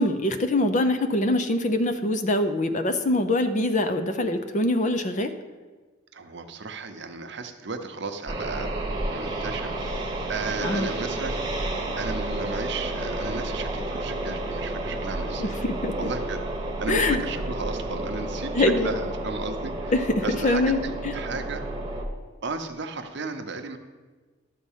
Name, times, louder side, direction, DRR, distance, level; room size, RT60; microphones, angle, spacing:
voice 1, 0.0-5.3 10.6-10.9 15.4-15.9 16.9-17.2 18.5-19.0 19.9-20.8 21.0-21.1, left 1 dB, 40° left, 8 dB, 0.6 m, -24 dB
voice 2, 6.1-11.7 12.0-15.5 16.0-16.4 16.8-19.9 20.2-21.6 22.4-23.8, right 4 dB, 60° right, 7 dB, 0.7 m, -34 dB
sound 1, 8.3-22.1, right 1 dB, 20° right, 1.0 m, -31 dB
11.5 x 4.1 x 7.3 m, 1.4 s
head